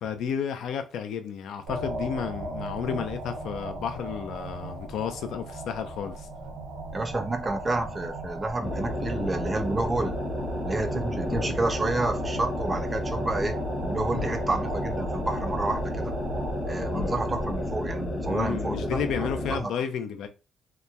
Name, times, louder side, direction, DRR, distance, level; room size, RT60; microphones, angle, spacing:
voice 1, 0.0-6.3 18.3-20.3, left 7 dB, 80° left, 0.4 m, -32 dB
sound 1, 1.7-17.7, right 1 dB, 90° right, 0.8 m, -37 dB
voice 2, 6.9-10.2 10.6-13.6 13.8-16.1 16.6-19.7, right 2 dB, 25° right, 0.4 m, -30 dB
sound 2, 8.6-19.7, left 1 dB, 40° left, 0.7 m, -31 dB
2.8 x 2.2 x 2.3 m
cardioid pair, 90°, 0 cm